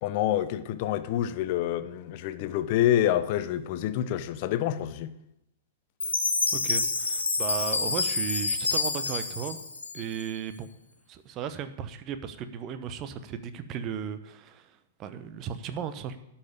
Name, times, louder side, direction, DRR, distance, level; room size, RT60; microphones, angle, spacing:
voice 1, 0.0-5.1, left 12 dB, 45° left, 0.8 m, -27 dB
Chime, 6.0-10.4, left 3 dB, 75° left, 1.6 m, -28 dB
voice 2, 6.5-9.6 9.9-10.7 11.1-16.2, right 8 dB, 30° right, 0.9 m, -36 dB
11.5 x 5.8 x 8.5 m
figure-of-eight pair, 105°, 0 cm